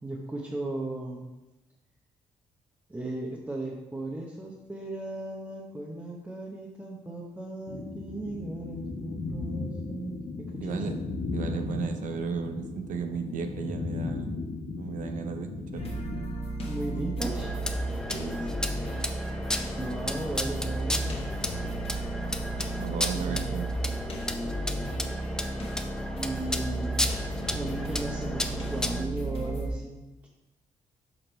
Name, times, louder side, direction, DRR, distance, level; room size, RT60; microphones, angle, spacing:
voice 1, 0.0-1.3 2.9-10.9 16.7-17.5 19.8-21.3 23.1-23.6 26.1-27.0 27.3-30.3, right 2 dB, 10° right, -3 dB, 0.9 m, -37 dB
sound 1, 7.7-16.2, left 3 dB, 85° left, 1.1 m, -36 dB
voice 2, 10.6-10.9 11.3-14.3 14.8-15.9 18.1-18.4 22.8-23.7, right 6 dB, 75° right, 6 dB, 0.7 m, -34 dB
sound 2, 15.8-29.7, right 1 dB, 45° left, 1.4 m, -33 dB
sound 3, 17.2-29.0, left 1 dB, 5° left, 0.5 m, -34 dB
6.1 x 5.1 x 4.4 m, 1.1 s
cardioid pair, 110°, 13 cm